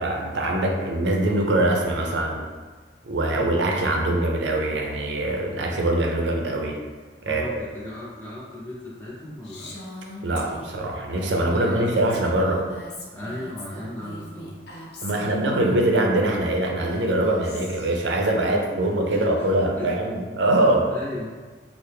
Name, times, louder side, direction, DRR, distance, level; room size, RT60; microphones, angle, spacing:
voice 1, 0.0-2.5 3.0-6.8 7.2-7.6 10.2-12.6 15.0-20.9, right 1 dB, 85° right, 1 dB, 0.5 m, -23 dB
voice 2, 7.2-9.8 11.3-11.9 13.1-14.6 18.5-19.5 19.8-19.9 20.9-21.4, left 1 dB, 10° left, -10 dB, 0.6 m, -36 dB
Female speech woman speaking, 9.4-15.8 16.6-18.0, left 1 dB, 65° left, 0.6 m, -40 dB
3.2 x 2.0 x 3.3 m, 1.4 s
head